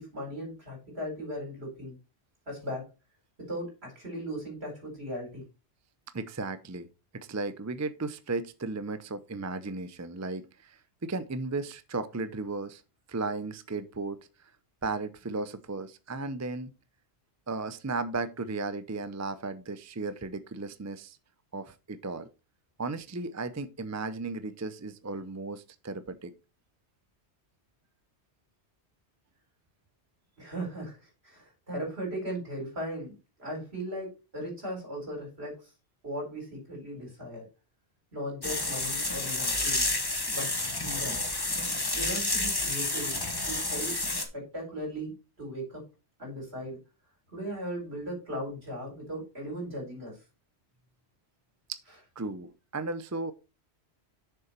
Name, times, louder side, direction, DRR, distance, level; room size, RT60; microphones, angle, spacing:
voice 1, 0.0-2.0 2.5-2.8 3.4-5.4 30.4-35.7 36.0-37.4 38.1-39.9 40.3-40.5 40.7-41.2 41.9-43.2 43.5-44.0 44.3-45.8 46.2-46.8 47.3-50.2, equal, 65° right, 4.8 m, -37 dB
voice 2, 6.1-6.9 7.1-12.8 13.1-14.2 14.8-16.7 17.5-21.2 21.5-22.3 22.8-26.3 51.7-51.8 52.2-53.3, right 3 dB, 20° right, 0.4 m, -35 dB
sound 1, 38.4-44.2, left 2 dB, 20° left, 1.2 m, -30 dB
6.9 x 6.9 x 4.4 m
omnidirectional pair, 1.1 m